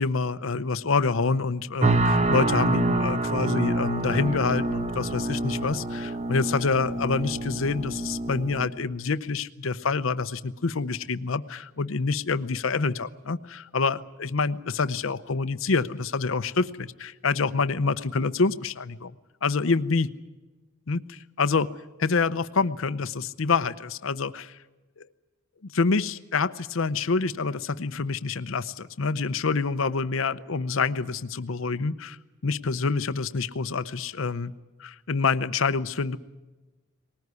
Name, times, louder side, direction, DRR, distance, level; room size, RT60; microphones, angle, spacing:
voice 1, 0.0-19.1 19.4-20.1 20.9-21.7 22.0-24.6 25.0-25.1 25.6-32.2 32.4-34.5 34.8-36.2, left 4 dB, 70° left, 14 dB, 0.7 m, -27 dB
sound 1, 1.8-8.7, right 2 dB, 30° right, 1.0 m, -27 dB
20.0 x 19.0 x 9.6 m, 1.2 s
head